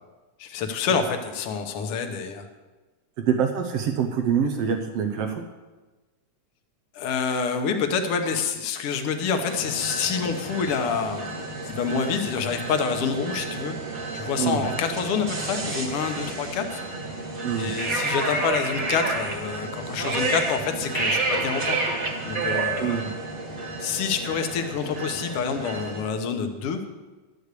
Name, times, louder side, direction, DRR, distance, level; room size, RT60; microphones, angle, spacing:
voice 1, 0.4-2.5 7.0-16.8 17.5-21.9 22.2-23.1 23.8-26.8, left 6 dB, 60° left, 5 dB, 1.7 m, -27 dB
voice 2, 3.2-5.4 14.4-14.6 17.4-17.7 22.8-23.1, right 7 dB, 65° right, 5 dB, 1.7 m, -25 dB
sound 1, 9.5-26.0, right 3 dB, 35° right, 1.9 m, -30 dB
12.0 x 6.6 x 8.3 m, 1.2 s
omnidirectional pair, 3.5 m